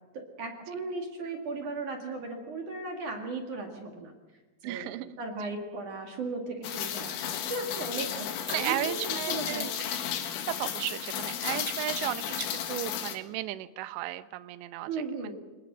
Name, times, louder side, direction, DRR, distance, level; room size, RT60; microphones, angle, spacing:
voice 1, 0.1-4.1 4.6-4.9 5.2-9.7 14.9-15.3, right 3 dB, 50° right, 2 dB, 2.8 m, -36 dB
voice 2, 4.6-5.1 8.5-9.7 10.5-14.9 15.2-15.3, right 15 dB, 75° right, 12 dB, 2.8 m, -34 dB
Rain, 6.6-13.2, left 9 dB, 70° left, 3.8 m, -34 dB
28.0 x 19.0 x 6.2 m, 1.2 s
omnidirectional pair, 5.8 m